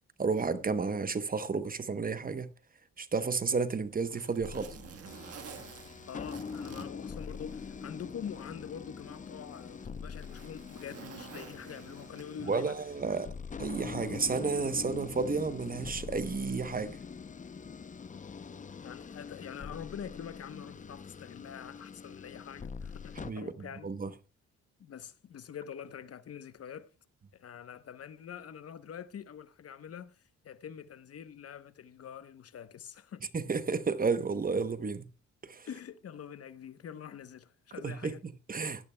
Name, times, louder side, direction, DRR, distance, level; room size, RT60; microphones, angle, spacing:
voice 1, 0.2-2.5 3.0-4.8 12.5-13.3 13.6-17.0 23.2-24.1 33.3-35.0 35.4-35.7 37.8-38.9, right 4 dB, 30° right, 0.9 m, -32 dB
Zipper (clothing), 3.4-7.9 8.3-8.4 9.1-12.6 13.8-14.0, right 7 dB, 50° right, 1.5 m, -50 dB
sound 1, 4.4-23.3, left 5 dB, 25° left, 0.6 m, -44 dB
voice 2, 6.1-12.8 18.8-23.9 24.8-26.9 27.4-30.2 30.4-33.3 35.7-38.2, left 8 dB, 50° left, 1.0 m, -45 dB
18.0 x 12.0 x 2.2 m
cardioid pair, 90°, 30 cm